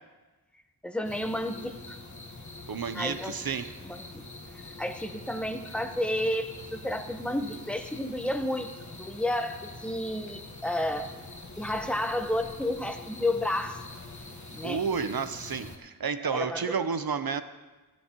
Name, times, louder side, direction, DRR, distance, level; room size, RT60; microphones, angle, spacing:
voice 1, 0.8-2.0 2.9-3.4 3.8-4.2 4.8-8.7 9.0-11.1 11.6-13.8 14.5-14.8 16.2-16.8, left 1 dB, 5° left, 6 dB, 0.9 m, -31 dB
sound 1, 1.0-15.8, left 2 dB, 50° left, 1.3 m, -44 dB
voice 2, 2.7-3.7 14.6-17.4, right 6 dB, 70° right, 11 dB, 0.7 m, -31 dB
14.5 x 13.0 x 3.0 m, 1.2 s
wide cardioid pair, 45°, 38 cm